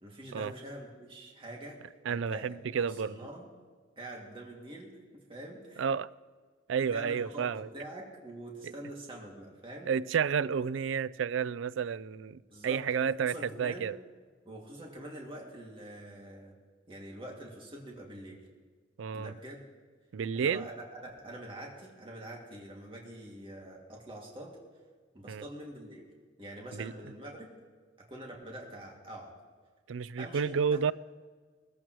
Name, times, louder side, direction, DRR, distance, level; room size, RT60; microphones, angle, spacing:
voice 1, 0.0-3.5 4.0-5.8 6.9-9.9 12.5-12.9 13.2-13.9 14.4-16.5 16.9-18.4 19.1-19.6 20.3-24.6 25.1-26.0 26.4-27.5 28.1-29.3 30.2-30.8, right 1 dB, 30° right, -2 dB, 2.4 m, -45 dB
voice 2, 2.1-3.1 5.8-6.1 6.7-7.7 8.6-8.7 9.9-13.3 13.6-14.0 19.0-19.3 20.1-20.7 25.3-25.4 26.7-26.9 29.9-30.9, right 6 dB, 80° right, 19 dB, 0.4 m, -31 dB
20.0 x 15.0 x 3.1 m, 1.5 s
head